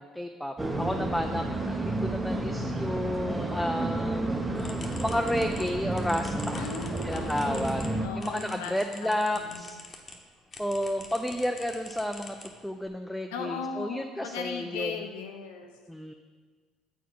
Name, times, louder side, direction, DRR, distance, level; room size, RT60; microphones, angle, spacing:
voice 1, 0.0-4.3 5.0-6.7 7.0-7.9 8.2-9.8 10.6-12.4 12.6-14.9 15.9-16.1, left 1 dB, 5° left, 5 dB, 0.4 m, -31 dB
sound 1, 0.6-8.1, right 2 dB, 15° right, 0.9 m, -31 dB
sound 2, 4.5-10.2 10.5-12.9, left 3 dB, 40° left, 0.9 m, -46 dB
voice 2, 6.5-8.7 9.0-9.7 13.3-15.7, left 5 dB, 80° left, 4 dB, 0.6 m, -38 dB
8.0 x 4.6 x 3.9 m, 1.5 s
hypercardioid pair, 60°, 0 cm